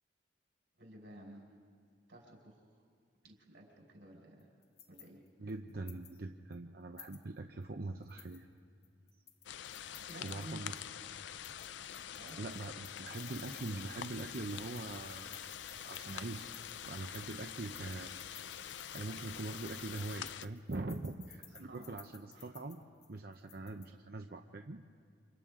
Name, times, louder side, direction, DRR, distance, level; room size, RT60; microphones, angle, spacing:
voice 1, 0.8-1.6 2.1-2.7 3.2-4.5 4.9-5.2 9.9-10.7 12.2-12.4 21.6-21.9 22.3-22.5, right 1 dB, 85° right, -2 dB, 5.4 m, -52 dB
sound 1, 4.4-6.2 6.5-6.6 7.0-7.6 8.0-10.9 11.3-13.7 14.0-23.9, left 9 dB, 40° left, 1.1 m, -58 dB
voice 2, 5.4-8.5 10.2-10.7 12.4-15.4 15.8-16.5 16.8-18.4 18.9-21.4 21.7-22.8 23.1-24.8, right 2 dB, 55° right, 4 dB, 0.7 m, -43 dB
sound 2, 9.5-20.5, left 9 dB, 75° left, 0.5 m, -46 dB
Cricket, 13.1-20.2, left 8 dB, 55° left, 2.9 m, -55 dB
29.0 x 26.5 x 3.7 m, 2.2 s
head